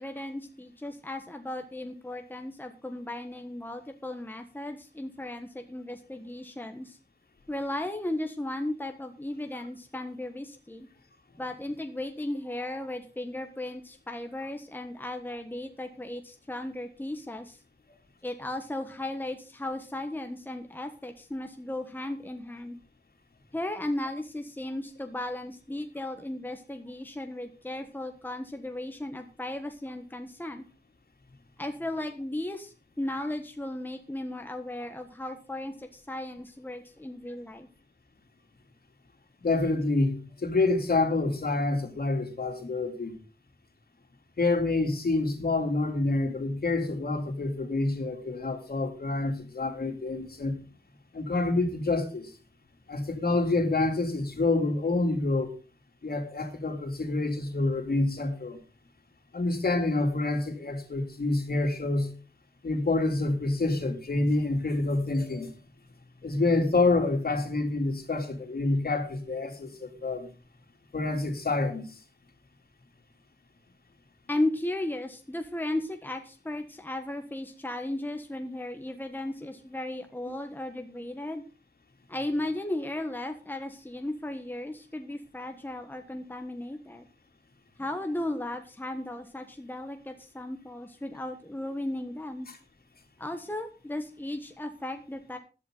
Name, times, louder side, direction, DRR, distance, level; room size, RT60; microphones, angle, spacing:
voice 1, 0.0-7.0 7.5-10.9 11.4-17.6 18.2-22.8 23.5-30.6 31.6-37.7 74.3-81.4 82.1-87.1 87.8-92.5 93.2-95.4, left 1 dB, 10° left, 5 dB, 1.4 m, -35 dB
voice 2, 39.4-43.2 44.4-50.5 51.1-52.3 52.9-55.5 56.0-58.6 59.3-62.1 62.6-65.5 66.2-70.3 70.9-71.9 80.3-80.4, left 2 dB, 60° left, 4 dB, 3.4 m, -27 dB
15.5 x 11.5 x 4.0 m, 0.33 s
wide cardioid pair, 105°, 18 cm